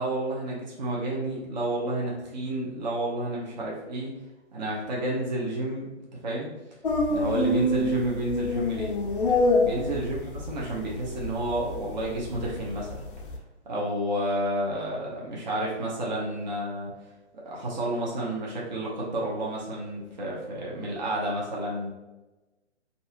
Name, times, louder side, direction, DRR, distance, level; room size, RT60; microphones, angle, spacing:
voice 1, 0.0-4.1 4.5-5.9 6.2-6.5 7.1-8.9 9.6-13.0 13.7-16.9 17.4-21.9, right 1 dB, 40° right, -4 dB, 0.7 m, -30 dB
sound 1, 6.8-13.4, left 2 dB, 50° left, 0.4 m, -27 dB
2.7 x 2.4 x 2.7 m, 1.1 s
hypercardioid pair, 155°, 36 cm